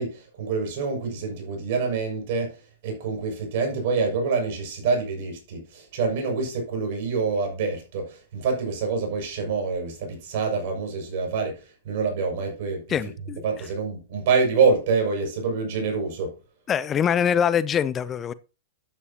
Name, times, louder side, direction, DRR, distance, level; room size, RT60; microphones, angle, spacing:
voice 1, 0.0-2.6 2.8-13.0 13.4-16.3, right 4 dB, 55° right, 6.4 m, -26 dB
voice 2, 12.9-13.4 16.7-18.3, left 8 dB, 25° left, 0.6 m, -23 dB
12.5 x 9.8 x 2.9 m
hypercardioid pair, 110°, 0 cm